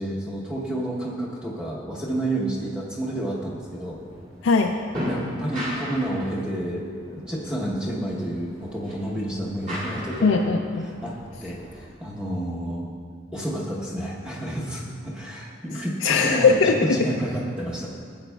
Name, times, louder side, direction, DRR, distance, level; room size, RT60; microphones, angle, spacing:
voice 1, 0.0-4.0 5.0-10.4 10.8-12.9 13.3-17.9, right 1 dB, 5° right, -5 dB, 0.9 m, -30 dB
sound 1, 3.6-11.9, equal, 35° right, 2.3 m, -37 dB
voice 2, 4.4-4.8 10.2-10.9 16.0-17.0, left 4 dB, 75° left, 2 dB, 0.4 m, -20 dB
13.0 x 7.9 x 2.3 m, 2.1 s
head